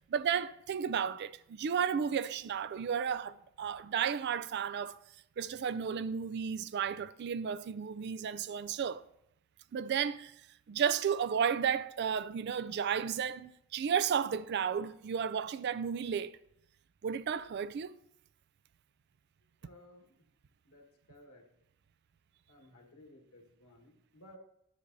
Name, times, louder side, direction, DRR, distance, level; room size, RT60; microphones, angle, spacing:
voice 1, 0.1-5.0 5.4-9.0 9.7-10.3 10.7-16.4 17.0-18.0, right 7 dB, 50° right, 0.3 m, -33 dB
voice 2, 19.6-20.2 20.6-21.5 22.5-24.4, left 1 dB, 80° left, 1.5 m, -57 dB
10.5 x 8.1 x 2.6 m
head